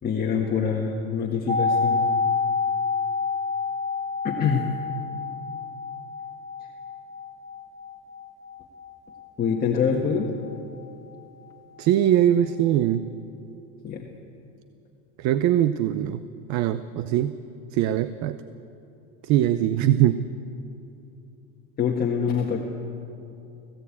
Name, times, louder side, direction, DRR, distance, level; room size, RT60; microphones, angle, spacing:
voice 1, 0.0-2.1 4.2-4.7 9.4-10.3 13.8-14.1 21.8-22.6, left 6 dB, 25° left, 0 dB, 1.6 m, -25 dB
sound 1, 1.5-11.2 11.5-11.6, left 4 dB, 10° left, 2.2 m, -29 dB
voice 2, 11.8-13.1 15.2-16.2 16.5-17.4 17.7-18.4 19.2-20.2, right 11 dB, 50° right, 13 dB, 0.7 m, -22 dB
19.5 x 16.0 x 8.7 m, 2.8 s
supercardioid pair, 135°, 35 cm